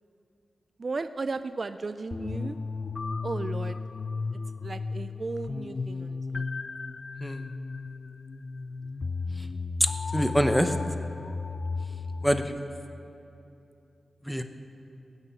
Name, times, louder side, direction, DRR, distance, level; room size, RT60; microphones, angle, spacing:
voice 1, 0.8-2.6 3.2-3.8 4.6-6.4, right 3 dB, 45° right, 11 dB, 0.4 m, -35 dB
sound 1, 2.1-12.5, left 4 dB, 50° left, 0.4 m, -34 dB
voice 2, 10.1-10.7 12.2-12.5 14.3-14.4, equal, ahead, 7 dB, 0.9 m, -25 dB
18.5 x 6.9 x 8.9 m, 2.8 s
wide cardioid pair, 80°, 0 cm